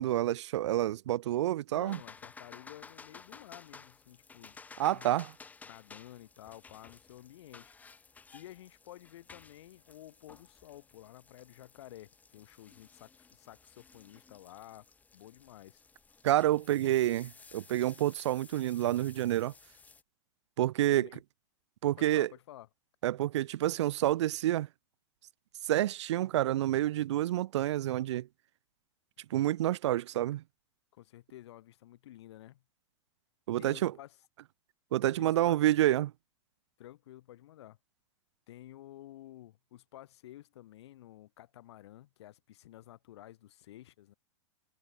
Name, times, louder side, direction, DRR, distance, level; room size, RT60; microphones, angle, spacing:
voice 1, 0.0-2.0 4.8-5.3 16.2-19.5 20.6-21.1 21.8-22.3 23.0-24.7 25.7-28.3 29.3-30.4 33.5-33.9 34.9-36.1, right 13 dB, 75° right, 0.6 m, -28 dB
voice 2, 1.7-4.6 4.9-5.1 5.6-7.8 8.3-14.9 15.1-15.8 20.9-21.2 22.0-22.7 30.9-32.6 33.6-34.2 35.2-35.6 36.8-37.8 38.5-44.1, left 14 dB, 65° left, 5.9 m, -52 dB
sound 1, 1.9-20.0, left 4 dB, 10° left, 4.3 m, -55 dB
supercardioid pair, 155°, 15 cm